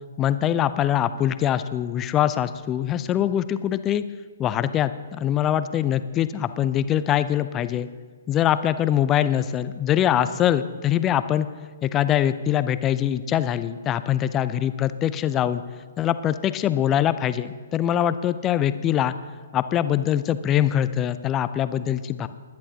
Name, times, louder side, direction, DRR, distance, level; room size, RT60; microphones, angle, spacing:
voice 1, 0.2-4.0 4.4-7.9 8.3-11.5 11.8-15.6 16.0-19.1 19.5-22.3, left 10 dB, 20° left, 13 dB, 0.6 m, -23 dB
21.0 x 10.5 x 2.9 m, 1.5 s
figure-of-eight pair, 125°, 0 cm